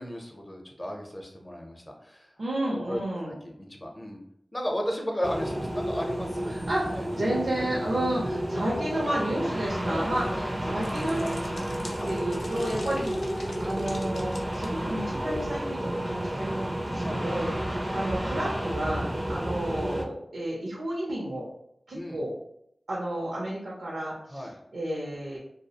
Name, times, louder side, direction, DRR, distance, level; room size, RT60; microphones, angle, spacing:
voice 1, 0.0-2.3 2.7-3.0 3.4-4.2 4.5-6.5 6.9-7.3 7.9-8.0 8.5-8.6 9.9-10.8 11.3-11.4 12.0-12.1 12.6-12.8 16.9-17.2 19.1-19.4 21.9-22.2 24.3-24.6, equal, 25° left, 1 dB, 0.6 m, -35 dB
voice 2, 2.4-3.3 6.5-11.5 12.0-13.1 13.6-21.5 21.9-22.3 22.9-24.5 24.7-25.4, right 1 dB, 85° right, -4 dB, 0.5 m, -31 dB
sound 1, 5.2-20.0, right 1 dB, 25° right, 0.4 m, -31 dB
sound 2, 9.7-15.6, left 1 dB, 80° left, 0.4 m, -45 dB
2.3 x 2.0 x 2.7 m, 0.74 s
wide cardioid pair, 50°, 0 cm